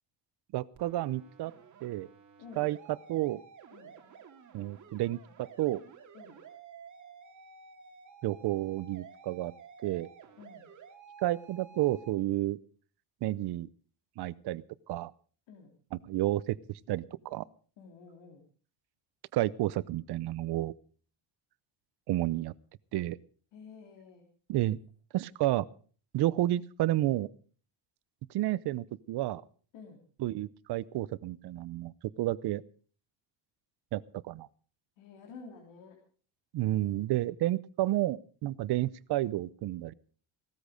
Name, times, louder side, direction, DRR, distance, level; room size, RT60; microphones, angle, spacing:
voice 1, 0.5-1.5 1.8-2.1 2.6-2.8 3.1-3.4 4.5-5.8 8.2-9.5 9.8-10.1 11.2-12.6 13.2-13.7 14.2-15.1 15.9-16.6 16.9-17.4 19.3-20.7 22.1-22.5 22.9-23.2 24.5-24.8 25.1-25.6 26.1-27.3 28.3-29.4 30.2-32.6 33.9-34.5 36.5-39.9, right 15 dB, 60° right, 19 dB, 0.8 m, -31 dB
sound 1, 0.7-12.1, right 6 dB, 40° right, 2.5 m, -53 dB
voice 2, 10.4-10.7 15.5-15.7 17.8-18.4 23.5-24.2 29.7-30.0 35.0-36.0, left 5 dB, 75° left, 1 dB, 3.5 m, -50 dB
17.5 x 13.5 x 5.1 m, 0.42 s
cardioid pair, 150°, 44 cm